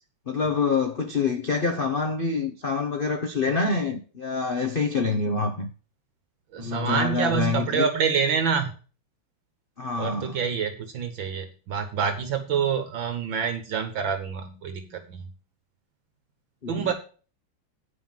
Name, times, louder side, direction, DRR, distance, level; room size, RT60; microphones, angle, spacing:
voice 1, 0.3-5.7 6.6-7.9 9.8-10.4 16.6-16.9, left 4 dB, 55° left, 0.6 m, -26 dB
voice 2, 6.5-8.7 10.0-15.3 16.7-16.9, right 6 dB, 65° right, 1.8 m, -27 dB
9.4 x 5.6 x 7.3 m
omnidirectional pair, 2.4 m